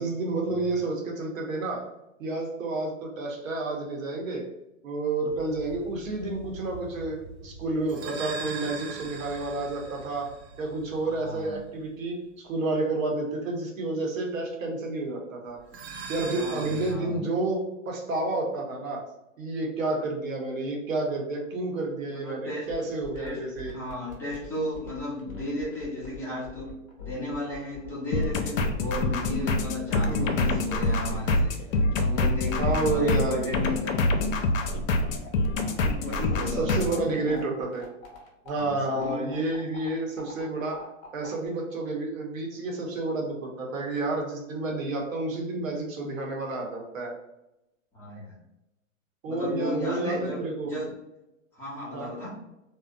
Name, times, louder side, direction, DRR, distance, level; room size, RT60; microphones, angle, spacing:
voice 1, 0.0-1.9 2.2-4.5 4.8-10.3 10.6-15.6 16.1-19.0 19.4-23.8 29.3-29.5 30.1-30.3 32.6-33.5 36.5-37.9 38.4-40.9 41.1-47.1 49.2-50.7 51.9-52.1, right 2 dB, 80° right, 1 dB, 0.9 m, -30 dB
sound 1, 5.3-11.9 15.6-16.9, right 4 dB, 55° right, 0.5 m, -41 dB
voice 2, 11.0-11.6 16.3-17.2 22.1-22.7 23.2-26.7 27.0-31.5 31.9-34.0 35.7-36.7 37.1-37.4 38.6-39.3 47.9-48.4 49.3-50.9 51.5-52.4, left 1 dB, 5° left, -7 dB, 0.6 m, -35 dB
sound 2, 22.7-41.5, left 6 dB, 35° left, 0.8 m, -44 dB
sound 3, 28.1-37.0, left 2 dB, 80° left, 0.5 m, -26 dB
2.6 x 2.0 x 2.5 m, 0.90 s
hypercardioid pair, 135°, 39 cm